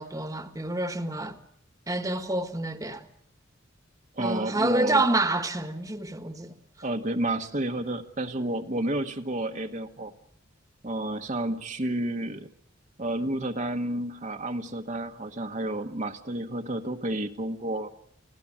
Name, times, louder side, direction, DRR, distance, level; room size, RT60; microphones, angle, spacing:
voice 1, 0.0-1.4 1.9-3.0 4.2-6.5, right 2 dB, 15° right, 1.4 m, -28 dB
voice 2, 4.1-5.0 6.8-10.1 10.8-12.5 13.0-17.9, right 1 dB, 35° right, 1.2 m, -30 dB
24.5 x 17.0 x 8.7 m
head